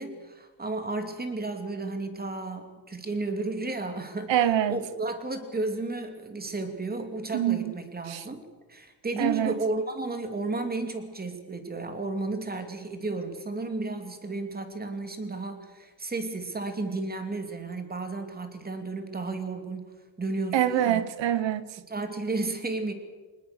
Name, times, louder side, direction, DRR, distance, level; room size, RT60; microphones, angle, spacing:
voice 1, 0.0-4.3 4.7-8.4 8.7-19.9 20.2-21.0 21.9-22.9, right 3 dB, 20° right, 2.7 m, -33 dB
voice 2, 4.3-4.8 7.3-7.7 8.1-8.2 9.2-9.5 20.5-21.7, right 11 dB, 85° right, 1.2 m, -25 dB
25.0 x 20.0 x 6.7 m
cardioid pair, 135°, 43 cm